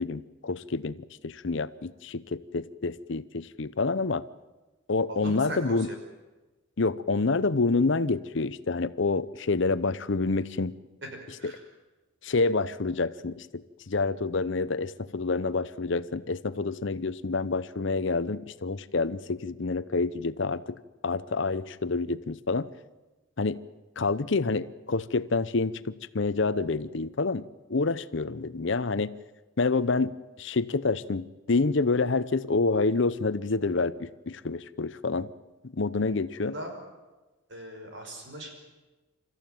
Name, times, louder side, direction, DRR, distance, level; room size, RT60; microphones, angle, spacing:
voice 1, 0.0-4.2 4.9-5.9 6.8-10.7 12.2-20.8 21.0-22.7 23.4-23.6 24.0-27.4 27.7-29.1 29.6-30.1 30.4-35.3 35.7-36.5, left 3 dB, 60° left, 15 dB, 0.7 m, -28 dB
voice 2, 5.1-6.0 11.0-11.6 36.4-36.7 37.5-38.5, right 1 dB, 60° right, 4 dB, 5.4 m, -39 dB
28.5 x 14.0 x 9.2 m, 1.1 s
head